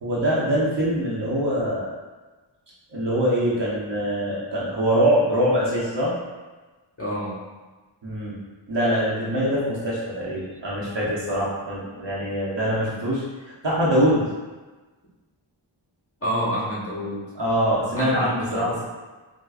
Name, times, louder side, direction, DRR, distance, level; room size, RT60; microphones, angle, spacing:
voice 1, 0.0-1.9 2.9-6.1 8.0-8.3 8.7-14.3 17.4-18.8, equal, 60° right, -7 dB, 0.9 m, -23 dB
voice 2, 7.0-7.4 11.4-11.6 16.2-17.3 17.9-18.7, equal, 30° left, -6 dB, 1.1 m, -28 dB
4.7 x 2.2 x 2.4 m, 1.3 s
wide cardioid pair, 60°, 48 cm